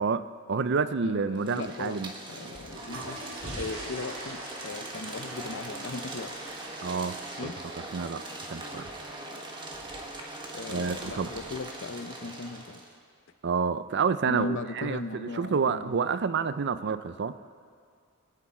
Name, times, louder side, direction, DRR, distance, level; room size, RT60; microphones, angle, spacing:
voice 1, 0.0-2.1 2.4-2.6 6.8-8.9 10.7-11.3 13.4-17.4, right 5 dB, 55° right, 13 dB, 0.5 m, -29 dB
voice 2, 1.0-2.0 2.3-3.3 3.5-6.3 7.4-7.5 10.5-12.8 14.3-16.0, left 3 dB, 60° left, 11 dB, 0.7 m, -37 dB
sound 1, 1.3-12.9, right 2 dB, 25° right, 1.5 m, -41 dB
sound 2, 2.5-11.5, right 1 dB, 75° right, 3.5 m, -44 dB
22.5 x 11.0 x 4.4 m, 2.1 s
head